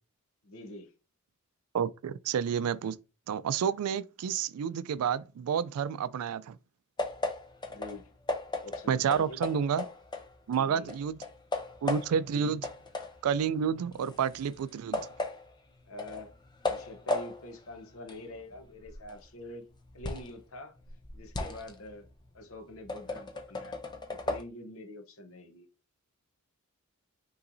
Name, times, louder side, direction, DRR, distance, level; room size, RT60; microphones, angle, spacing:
voice 1, 0.4-0.9 7.7-8.1 8.6-9.4 10.5-10.9 12.3-12.6 15.9-16.3 16.7-19.7 19.9-20.8 21.1-22.1 22.3-25.7, left 1 dB, 70° left, 0.8 m, -45 dB
voice 2, 1.7-3.0 3.3-6.6 8.9-9.9 10.5-11.2 11.8-12.6 13.2-15.0, right 7 dB, 85° right, 0.3 m, -30 dB
sound 1, 7.0-10.6 10.9-12.3 12.6-20.4 20.8-24.4, left 2 dB, 20° left, 0.5 m, -37 dB
5.5 x 3.1 x 2.6 m
head